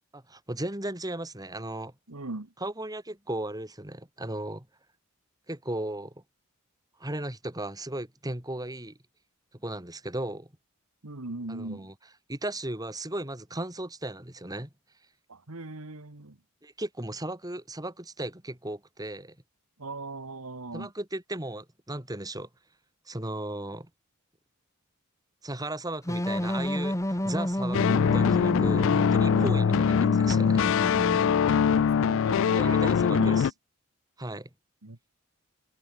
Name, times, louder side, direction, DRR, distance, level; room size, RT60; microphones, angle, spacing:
voice 1, 0.1-1.9 2.6-4.7 5.5-6.1 7.0-9.0 9.6-10.5 11.5-11.9 12.3-14.7 16.6-19.3 20.7-22.5 23.1-23.9 25.4-30.6 32.5-33.5 34.2-34.5, right 1 dB, 15° right, 3.3 m, -36 dB
voice 2, 2.1-2.5 11.0-11.9 15.3-16.4 19.8-20.9 29.3-29.6 31.4-33.5 34.8-35.0, right 3 dB, 80° right, 1.7 m, -38 dB
sound 1, 26.1-31.7, equal, 15° left, 1.8 m, -30 dB
sound 2, 27.7-33.5, left 7 dB, 60° left, 0.3 m, -23 dB
head